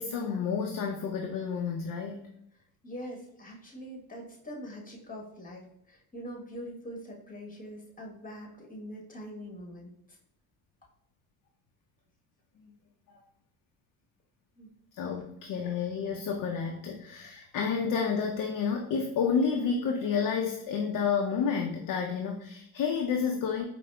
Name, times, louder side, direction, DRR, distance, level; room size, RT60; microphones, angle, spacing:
voice 1, 0.0-2.3 12.6-12.7 13.1-13.2 14.9-23.7, left 6 dB, 45° left, 2 dB, 0.5 m, -30 dB
voice 2, 2.8-10.2 14.6-14.7, equal, 15° left, -1 dB, 1.1 m, -43 dB
4.7 x 2.1 x 2.2 m, 0.77 s
hypercardioid pair, 60°, 47 cm